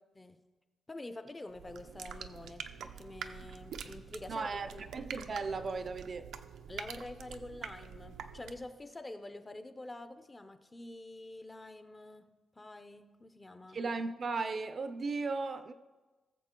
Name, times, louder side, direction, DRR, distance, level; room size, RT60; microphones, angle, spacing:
voice 1, 0.9-4.9 6.7-13.8, left 2 dB, 15° left, 0.5 m, -47 dB
sound 1, 1.5-8.8, right 7 dB, 85° right, 0.6 m, -46 dB
voice 2, 4.3-6.3 13.7-15.7, right 4 dB, 35° right, 0.5 m, -36 dB
19.0 x 7.2 x 3.7 m
wide cardioid pair, 160°, 0 cm